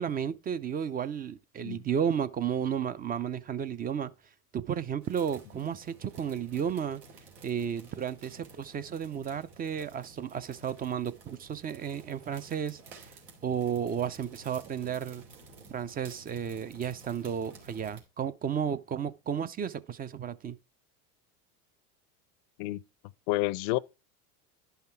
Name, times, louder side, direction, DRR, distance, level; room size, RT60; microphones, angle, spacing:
voice 1, 0.0-4.1 4.5-7.0 7.4-13.1 13.4-15.2 15.7-20.6, right 8 dB, 20° right, 0.4 m, -33 dB
sound 1, 5.0-18.0, right 3 dB, 90° right, 2.8 m, -53 dB
voice 2, 23.3-23.8, left 19 dB, 55° left, 0.6 m, -29 dB
10.5 x 5.7 x 4.4 m
hypercardioid pair, 100°, 46 cm